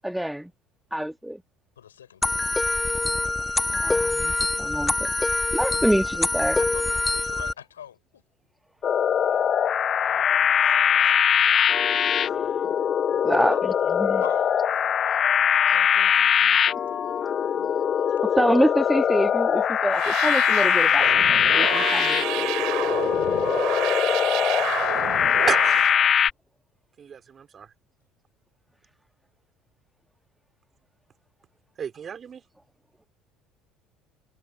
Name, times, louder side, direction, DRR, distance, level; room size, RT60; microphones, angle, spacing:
voice 1, 0.0-0.5 0.9-1.4 3.7-5.1 5.5-6.5 13.2-14.2 18.3-21.2 21.5-22.4, equal, 5° right, 1.5 m, -26 dB
voice 2, 1.8-2.8 6.6-8.2 10.0-12.7 14.2-14.8 15.7-17.8, left 9 dB, 80° left, 4.8 m, -45 dB
sound 1, 2.2-7.5, left 2 dB, 15° left, 1.3 m, -25 dB
sound 2, 8.8-26.3, left 8 dB, 40° left, 0.7 m, -22 dB
sound 3, 19.9-26.0, right 19 dB, 60° right, 4.8 m, -30 dB
voice 3, 25.5-26.0 27.0-27.7 31.8-32.4, right 7 dB, 35° right, 3.9 m, -32 dB
figure-of-eight pair, 60°, 0 cm